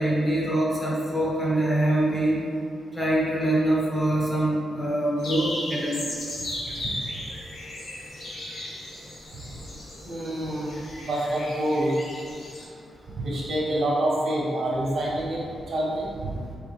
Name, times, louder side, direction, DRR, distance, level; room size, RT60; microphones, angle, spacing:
voice 1, 0.0-2.4 2.9-6.0, right 1 dB, 15° left, -5 dB, 0.7 m, -24 dB
sound 1, 5.2-12.6, left 1 dB, 55° left, 1.2 m, -36 dB
voice 2, 10.0-10.7 11.0-11.9 13.2-16.4, right 1 dB, 50° right, -5 dB, 1.1 m, -27 dB
4.4 x 3.4 x 3.5 m, 2.3 s
wide cardioid pair, 170°, 0 cm